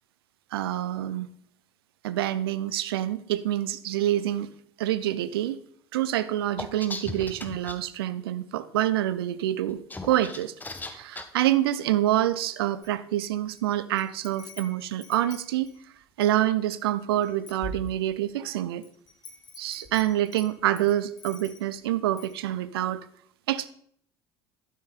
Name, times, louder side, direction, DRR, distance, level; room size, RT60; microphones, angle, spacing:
voice 1, 0.5-1.3 2.0-4.5 4.8-5.6 5.9-10.5 10.9-15.7 16.2-18.8 19.6-23.0 23.5-23.7, right 13 dB, 70° right, 15 dB, 0.7 m, -27 dB
sound 1, 6.6-7.8 9.7-11.2, left 2 dB, 15° left, 1.4 m, -37 dB
Wind chime, 12.8-13.6 14.0-16.4 16.9-17.0 17.2-18.3 18.8-21.8 22.2-22.4, left 2 dB, 30° left, 2.4 m, -44 dB
12.0 x 9.5 x 4.2 m, 0.62 s
figure-of-eight pair, 65°, 13 cm